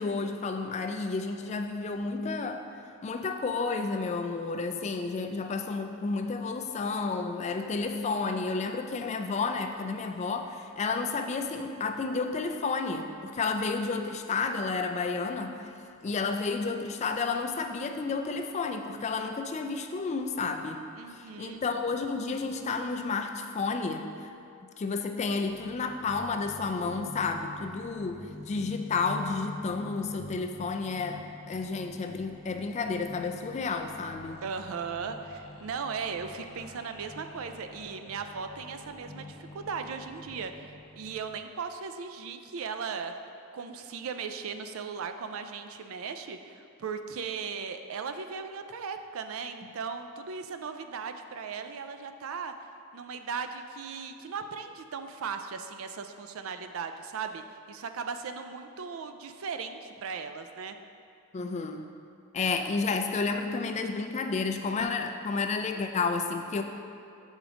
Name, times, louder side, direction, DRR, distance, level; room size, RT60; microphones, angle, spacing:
voice 1, 0.0-2.6 3.0-15.6 16.0-20.8 21.1-24.3 24.8-34.4 61.3-61.9 62.3-66.6, left 4 dB, 30° left, 6 dB, 0.3 m, -31 dB
voice 2, 21.0-21.6 34.4-43.1 43.5-52.5 52.9-60.8, right 5 dB, 65° right, 8 dB, 0.4 m, -37 dB
sound 1, 25.5-41.4, left 2 dB, 65° left, 0.8 m, -47 dB
7.2 x 5.1 x 3.7 m, 2.6 s
head